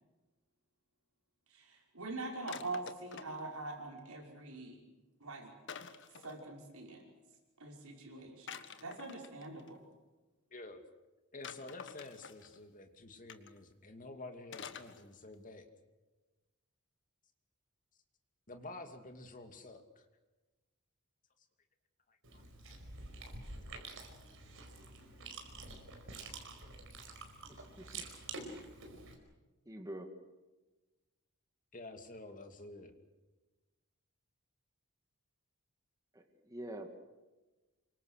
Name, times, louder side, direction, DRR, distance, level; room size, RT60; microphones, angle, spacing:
voice 1, 1.5-4.8 5.2-5.5 6.2-7.0 7.6-9.8, right 2 dB, 80° right, 1 dB, 5.7 m, -44 dB
sound 1, 2.5-3.5 5.7-6.4 8.5-9.7 11.4-12.6 13.3-13.6 14.5-15.0 15.3-15.4, left 6 dB, 60° left, 1.5 m, -48 dB
voice 2, 10.5-10.8 11.3-15.7 18.5-20.0 22.1-22.4 25.7-25.8 31.7-32.9, left 2 dB, 40° left, 6 dB, 2.6 m, -50 dB
Chewing mastication, 22.2-29.1, right 3 dB, 65° right, 4.9 m, -48 dB
voice 3, 27.5-28.0 29.7-30.1 36.1-36.9, right 1 dB, 15° right, 4 dB, 2.3 m, -46 dB
27.5 x 24.5 x 6.6 m, 1.1 s
head